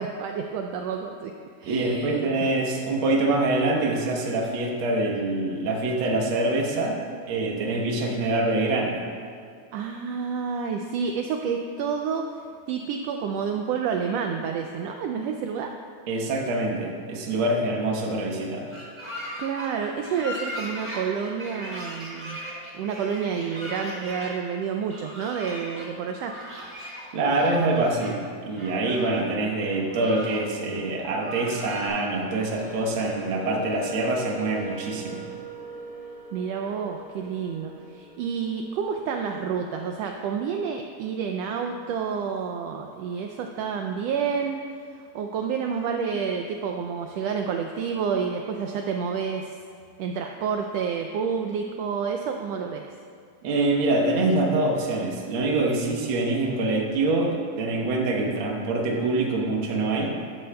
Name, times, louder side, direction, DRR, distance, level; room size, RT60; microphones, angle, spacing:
voice 1, 0.0-1.3 1.6-2.6 9.7-12.2 12.7-15.7 19.4-22.4 22.7-26.3 36.3-44.6 45.0-49.6 50.0-52.9, right 6 dB, 90° right, 4 dB, 1.4 m, -29 dB
voice 2, 1.7-9.0 16.1-18.7 27.1-35.2 53.4-60.2, right 2 dB, 55° right, 0 dB, 1.6 m, -25 dB
sound 1, 18.7-24.3 24.9-25.9 26.2-27.1 27.3-28.1 28.5-29.2 29.6-30.4 30.7-30.8 31.1-31.9, equal, 15° right, 1.8 m, -38 dB
sound 2, 31.9-40.1, right 3 dB, 65° left, 3.5 m, -42 dB
12.0 x 12.0 x 2.3 m, 2.3 s
omnidirectional pair, 3.4 m